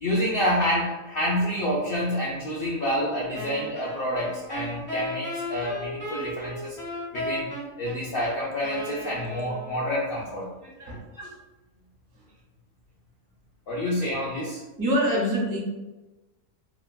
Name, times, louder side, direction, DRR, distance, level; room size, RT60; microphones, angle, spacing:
voice 1, 0.0-6.8 7.1-7.5 7.8-10.5 11.2-11.3 13.7-14.6, equal, 70° left, -5 dB, 0.5 m, -28 dB
Wind instrument woodwind instrument, 3.3-9.9, left 1 dB, 10° left, 0.6 m, -35 dB
voice 2, 10.6-11.0 14.8-15.6, equal, 70° right, -3 dB, 1.2 m, -25 dB
3.2 x 2.1 x 2.2 m, 1.1 s
omnidirectional pair, 1.5 m